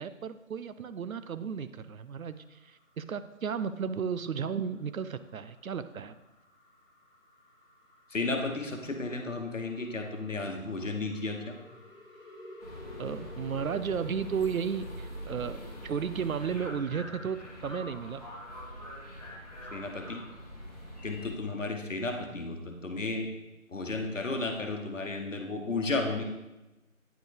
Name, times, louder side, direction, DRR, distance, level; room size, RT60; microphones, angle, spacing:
voice 1, 0.0-6.1 13.0-18.2, right 7 dB, 80° right, 12 dB, 0.5 m, -34 dB
sound 1, 2.2-17.3, left 3 dB, ahead, 1.6 m, -54 dB
voice 2, 8.1-11.6 19.7-20.2 21.0-23.3 23.7-26.2, left 3 dB, 65° left, 4 dB, 1.1 m, -33 dB
sound 2, 12.6-21.3, equal, 30° left, 1.2 m, -43 dB
8.9 x 4.3 x 3.3 m, 1.0 s
figure-of-eight pair, 165°, 41 cm